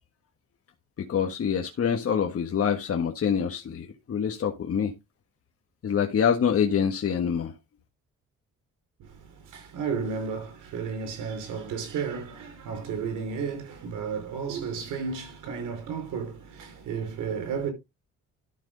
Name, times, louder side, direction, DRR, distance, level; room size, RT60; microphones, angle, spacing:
voice 1, 1.1-4.9 5.8-7.5, left 7 dB, 50° left, 1.5 m, -25 dB
voice 2, 9.0-17.7, right 6 dB, 90° right, 5.1 m, -33 dB
12.0 x 6.1 x 3.9 m
cardioid pair, 90°, 30 cm